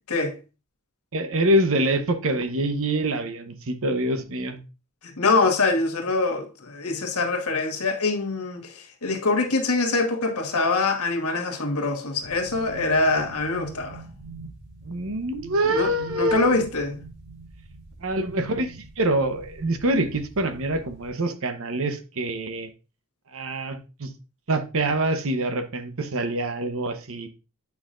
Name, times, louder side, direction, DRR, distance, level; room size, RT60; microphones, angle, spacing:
voice 1, 1.1-4.6 14.8-16.5 18.0-22.7 23.3-24.1 24.5-27.3, right 1 dB, 65° right, 0.9 m, -25 dB
voice 2, 5.0-14.0 15.7-17.0, left 3 dB, 90° left, 1.3 m, -24 dB
sound 1, 12.2-21.1, right 3 dB, 85° right, 4.5 m, -44 dB
8.8 x 5.7 x 2.5 m
head